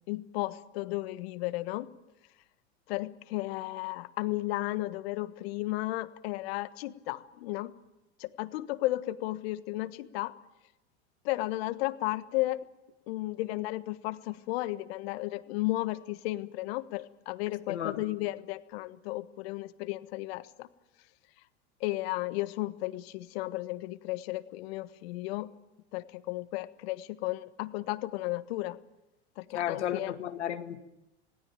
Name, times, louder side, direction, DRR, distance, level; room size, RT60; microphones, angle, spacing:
voice 1, 0.0-1.9 2.9-7.7 8.2-10.3 11.2-12.7 13.1-20.7 21.8-25.5 25.9-28.8 29.4-30.1, left 18 dB, 65° left, 13 dB, 1.5 m, -34 dB
voice 2, 17.7-18.1 29.5-30.8, left 10 dB, 85° left, 8 dB, 2.0 m, -33 dB
26.5 x 18.0 x 9.0 m, 0.96 s
hypercardioid pair, 105°, 34 cm